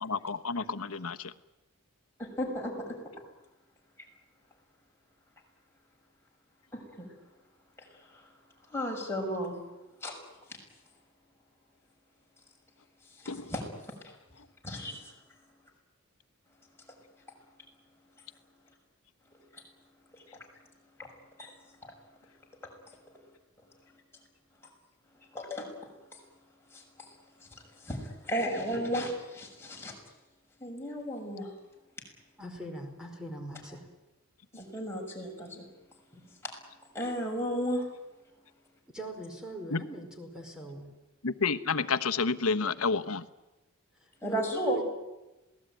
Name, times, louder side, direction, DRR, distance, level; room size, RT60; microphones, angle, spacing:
voice 1, 0.0-1.3 13.3-13.5 39.7-39.8 41.2-43.3, left 4 dB, 80° left, 10 dB, 1.1 m, -30 dB
voice 2, 2.2-2.9 6.7-7.1 8.1-8.2 8.7-9.6 10.0-10.1 13.2-14.1 14.6-15.0 19.5-19.6 20.1-20.2 21.4-21.5 21.8-21.9 25.3-25.7 26.7-27.1 27.5-29.9 30.6-31.5 34.5-35.6 36.9-37.9 44.2-44.8, equal, 10° left, -1 dB, 6.4 m, -34 dB
voice 3, 32.4-33.9 36.1-36.2 38.9-40.9 44.0-44.8, right 1 dB, 5° right, 2 dB, 4.9 m, -42 dB
27.0 x 18.5 x 9.3 m, 1.0 s
head